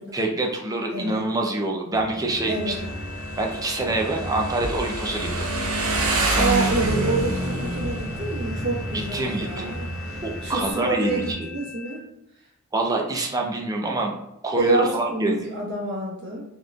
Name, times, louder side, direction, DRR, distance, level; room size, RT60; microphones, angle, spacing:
voice 1, 0.1-2.7 3.4-5.5 9.1-9.7 10.2-11.5 12.7-14.1 14.4-15.4, right 2 dB, 15° right, 1 dB, 0.5 m, -26 dB
sound 1, 1.9-11.3, right 1 dB, 5° left, 1.0 m, -37 dB
sound 2, 2.3-12.0, left 6 dB, 35° left, 1.1 m, -42 dB
Motorcycle, 2.5-10.7, right 2 dB, 85° right, 0.8 m, -28 dB
voice 2, 6.3-12.0 14.6-16.4, right 2 dB, 55° right, -5 dB, 1.1 m, -27 dB
4.3 x 3.1 x 2.3 m, 0.85 s
head